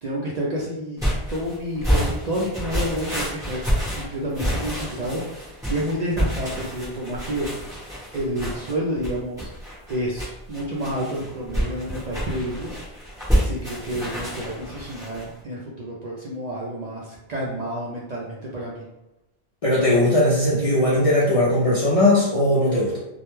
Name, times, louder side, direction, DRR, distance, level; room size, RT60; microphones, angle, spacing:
voice 1, 0.0-1.0 1.3-3.6 3.9-9.5 9.9-12.8 13.3-18.8, equal, 55° right, -5 dB, 0.5 m, -29 dB
sound 1, 1.0-15.3, equal, 5° right, 0.9 m, -28 dB
voice 2, 19.6-23.0, left 1 dB, 50° left, -6 dB, 0.4 m, -19 dB
2.3 x 2.1 x 3.0 m, 0.94 s
omnidirectional pair, 1.1 m